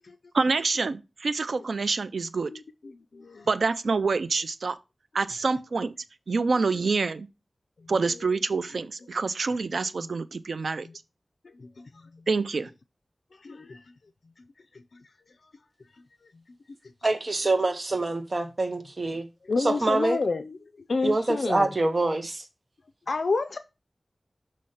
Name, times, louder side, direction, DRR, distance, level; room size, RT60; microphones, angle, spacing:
voice 1, 0.3-2.5 3.5-4.8 5.1-5.9 6.3-7.3 7.9-10.9 12.3-12.7, right 4 dB, 85° right, 0.4 m, -26 dB
voice 2, 2.5-3.5 10.8-10.9 11.6-11.9 13.4-13.8 19.5-20.6 20.9-21.7 23.1-23.6, left 3 dB, 80° left, 0.4 m, -29 dB
voice 3, 17.0-19.3 19.6-20.2 21.0-22.4, right 2 dB, 45° right, 1.0 m, -25 dB
6.5 x 3.1 x 5.5 m
wide cardioid pair, 80°, 0 cm